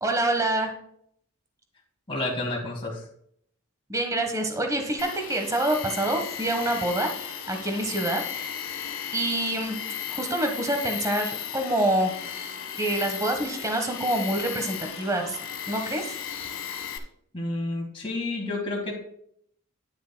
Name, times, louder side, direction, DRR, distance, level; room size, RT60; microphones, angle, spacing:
voice 1, 0.0-0.7 3.9-8.5 9.1-9.7 10.1-12.1 12.8-15.4 15.7-16.1, right 1 dB, 15° right, 4 dB, 1.3 m, -26 dB
voice 2, 2.1-3.0 17.3-19.0, left 2 dB, 25° left, -3 dB, 2.0 m, -30 dB
Tools, 5.0-17.0, left 9 dB, 70° left, 1.2 m, -35 dB
10.0 x 9.4 x 2.2 m, 0.66 s
head